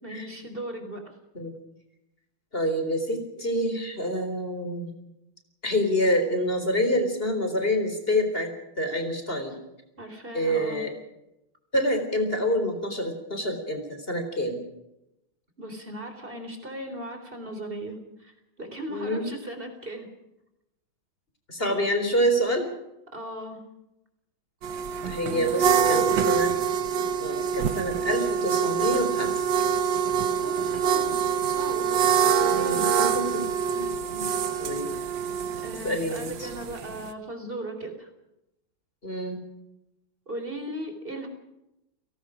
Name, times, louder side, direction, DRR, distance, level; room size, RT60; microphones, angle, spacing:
voice 1, 0.0-1.0 10.0-10.8 15.6-20.1 23.1-23.6 25.3-26.4 30.4-31.2 31.6-32.9 34.2-34.4 35.6-38.1 40.3-41.3, right 1 dB, 25° right, 6 dB, 4.2 m, -38 dB
voice 2, 2.5-4.9 5.6-9.6 10.3-10.9 11.7-14.6 18.9-19.3 21.5-22.7 25.0-26.5 27.0-29.5 32.4-33.5 33.7-34.2 34.6-35.0 35.8-36.5 39.0-39.4, equal, 25° left, 6 dB, 4.3 m, -27 dB
sound 1, 24.6-37.1, right 7 dB, 65° right, 1.8 m, -25 dB
29.5 x 18.5 x 5.1 m, 0.88 s
omnidirectional pair, 2.3 m